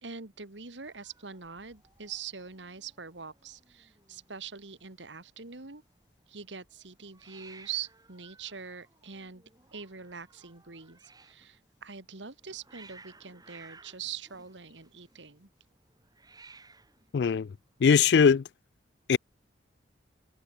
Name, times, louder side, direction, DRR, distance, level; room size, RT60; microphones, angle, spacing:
voice 1, 0.0-5.8 6.3-9.4 9.7-15.5, right 7 dB, 85° right, 2.2 m, -43 dB
Hiss, 0.8-18.2, right 3 dB, 20° right, 7.0 m, -58 dB
voice 2, 17.1-17.5 17.8-18.4 19.1-19.2, left 6 dB, 65° left, 0.3 m, -20 dB
open air
head